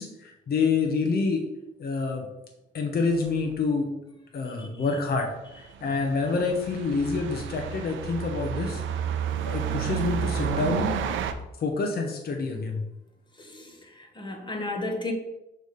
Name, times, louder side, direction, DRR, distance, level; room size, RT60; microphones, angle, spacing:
voice 1, 0.0-1.4 1.8-2.3 2.7-3.9 4.3-5.3 5.6-8.8 9.4-10.9 11.6-12.8, left 4 dB, 50° left, 2 dB, 1.0 m, -27 dB
sound 1, 3.1-3.3 5.9-11.3, right 7 dB, 80° right, 0.6 m, -30 dB
voice 2, 13.4-15.1, left 2 dB, 25° left, 3 dB, 1.3 m, -34 dB
6.3 x 3.4 x 5.2 m, 0.93 s
cardioid pair, 90°, 20 cm